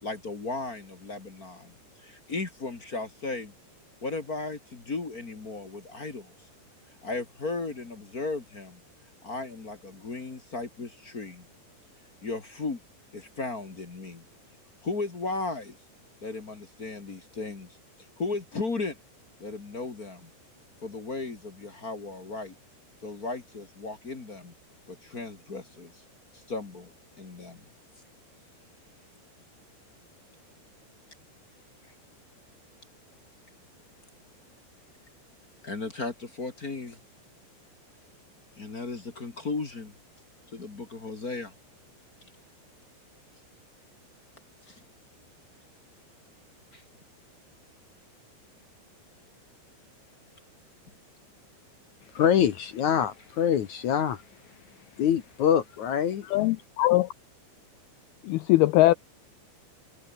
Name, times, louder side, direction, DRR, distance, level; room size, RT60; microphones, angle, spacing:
voice 1, 0.0-3.5 4.0-6.5 7.0-8.8 9.2-11.5 12.2-12.8 13.1-14.2 14.8-15.8 16.2-17.8 18.2-19.0 19.4-20.3 20.8-22.5 23.0-24.5 24.9-26.0 26.3-27.6 35.6-37.0 38.6-39.9 40.5-41.5 44.6-44.8 46.7-46.8, left 3 dB, 35° left, 1.5 m, -36 dB
voice 2, 52.1-54.2 55.0-56.3, left 9 dB, 65° left, 1.9 m, -24 dB
voice 3, 56.3-57.1 58.2-58.9, left 17 dB, 85° left, 2.2 m, -21 dB
omnidirectional pair, 5.3 m